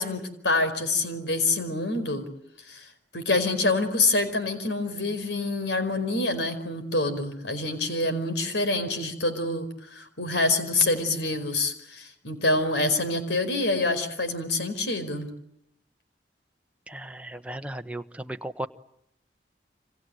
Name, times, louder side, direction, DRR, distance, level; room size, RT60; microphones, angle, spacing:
voice 1, 0.0-2.3 2.7-2.9 3.1-15.3, left 2 dB, 80° left, 9 dB, 4.8 m, -26 dB
voice 2, 16.9-18.7, right 1 dB, 5° right, 7 dB, 1.1 m, -36 dB
28.0 x 26.0 x 7.9 m, 0.76 s
head